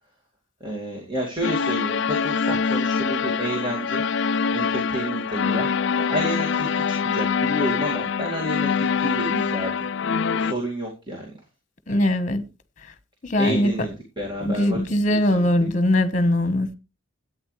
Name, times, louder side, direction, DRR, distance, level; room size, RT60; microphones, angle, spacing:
voice 1, 0.6-4.0 4.5-5.7 6.1-9.9 10.4-11.3 13.4-14.8 15.1-15.5, equal, 25° right, 2.3 m, -30 dB
sound 1, 1.4-10.5, left 6 dB, 60° left, 0.4 m, -24 dB
voice 2, 11.9-12.4 13.2-13.7 14.4-16.7, left 1 dB, 40° left, 1.3 m, -21 dB
13.0 x 9.0 x 3.3 m
head